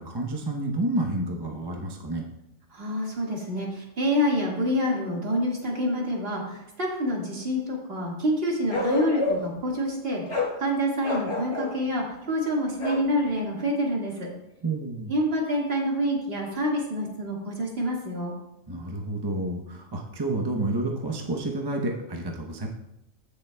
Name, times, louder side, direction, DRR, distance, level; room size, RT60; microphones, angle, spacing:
voice 1, 0.0-2.3 14.6-15.1 18.7-22.7, right 2 dB, 25° right, 1 dB, 0.7 m, -29 dB
voice 2, 2.7-10.2 10.6-14.3 15.1-18.3, equal, 45° right, -2 dB, 2.1 m, -27 dB
Bark, 8.7-9.6 10.3-10.6 11.0-11.8 12.8-13.1, left 2 dB, 25° left, 1.2 m, -28 dB
15.5 x 6.7 x 2.3 m, 0.88 s
omnidirectional pair, 1.4 m